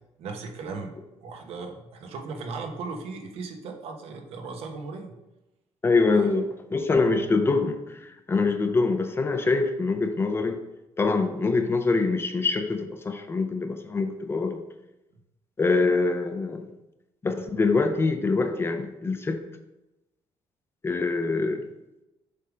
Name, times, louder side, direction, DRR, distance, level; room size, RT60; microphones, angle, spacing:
voice 1, 0.2-0.9 1.2-5.2 6.1-6.3, right 4 dB, 75° right, 4 dB, 1.0 m, -37 dB
voice 2, 5.8-10.6 11.0-14.6 15.6-16.7 17.2-19.4 20.8-21.7, left 3 dB, 25° left, 7 dB, 0.5 m, -24 dB
6.8 x 3.6 x 5.0 m, 0.95 s
cardioid pair, 120°, 10 cm